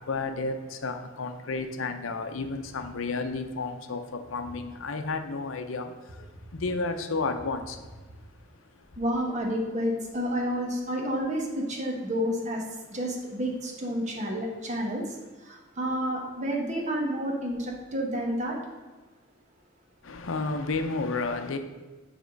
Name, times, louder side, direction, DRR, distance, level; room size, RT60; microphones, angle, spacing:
voice 1, 0.0-7.9 8.8-8.9 20.0-21.6, left 3 dB, 75° left, 0.6 m, -32 dB
voice 2, 9.0-12.6 12.9-15.0 15.4-18.6, equal, 35° right, 1.2 m, -30 dB
7.2 x 3.6 x 5.2 m
head